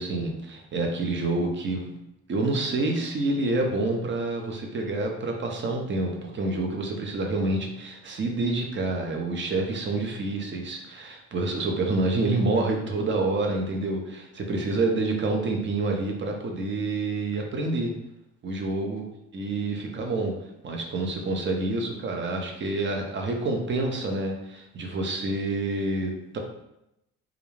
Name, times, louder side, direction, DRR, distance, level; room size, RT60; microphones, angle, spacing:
voice 1, 0.0-1.9 2.3-17.9 18.4-19.0 19.3-20.3 20.6-26.4, right 2 dB, 40° right, 2 dB, 0.6 m, -28 dB
2.4 x 2.2 x 3.1 m, 0.86 s
cardioid pair, 90°, 30 cm